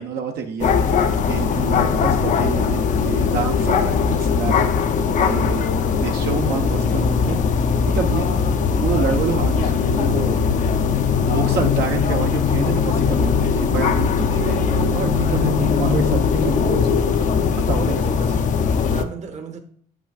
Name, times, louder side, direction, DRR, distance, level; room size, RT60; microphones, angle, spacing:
voice 1, 0.0-4.8 5.2-5.7 5.9-8.4 8.7-10.4 11.2-17.1 17.7-18.1, right 5 dB, 70° right, 1.0 m, -27 dB
sound 1, 0.6-19.0, left 6 dB, 50° left, 0.6 m, -20 dB
voice 2, 17.9-19.6, right 4 dB, 45° right, 1.0 m, -36 dB
7.8 x 6.0 x 2.4 m
cardioid pair, 110°, 17 cm